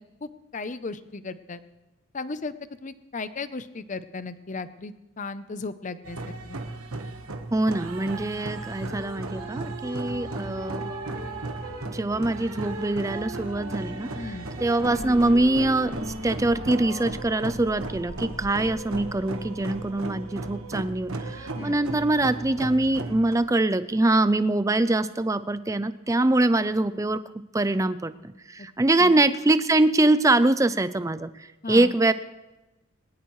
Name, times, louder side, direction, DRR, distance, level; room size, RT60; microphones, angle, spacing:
voice 1, 0.2-1.6 2.1-6.6 14.2-14.5 21.5-21.8 29.0-29.1 31.6-31.9, left 3 dB, 35° left, 13 dB, 0.6 m, -36 dB
sound 1, 6.0-23.4, right 3 dB, 85° right, 1.3 m, -36 dB
voice 2, 7.5-10.8 11.8-14.3 14.6-16.0 16.2-27.2 27.5-31.3 31.7-32.1, right 2 dB, 15° right, 13 dB, 0.4 m, -23 dB
sound 2, 8.4-17.1, equal, 45° right, 1.7 m, -39 dB
sound 3, 14.8-20.0, equal, 90° left, 2.5 m, -44 dB
20.0 x 19.5 x 3.2 m, 1.1 s
head